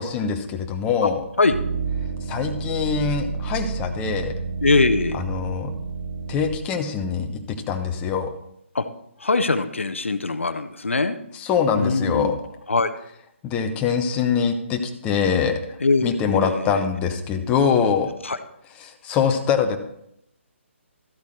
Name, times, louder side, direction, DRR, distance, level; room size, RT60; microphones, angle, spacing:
voice 1, 0.0-1.2 2.3-4.3 5.2-5.7 6.3-7.3 7.7-8.3 11.4-12.3 13.4-15.6 16.0-18.1 18.8-19.8, left 6 dB, 15° left, 5 dB, 0.8 m, -23 dB
sound 1, 1.5-6.6, right 5 dB, 45° right, 0.9 m, -30 dB
voice 2, 4.6-5.2 8.7-8.9 9.2-11.2 11.7-12.3 12.7-12.9 15.8-16.8 18.2-18.4, left 3 dB, 70° left, 11 dB, 0.7 m, -22 dB
13.5 x 8.2 x 3.2 m, 0.76 s
figure-of-eight pair, 140°, 7 cm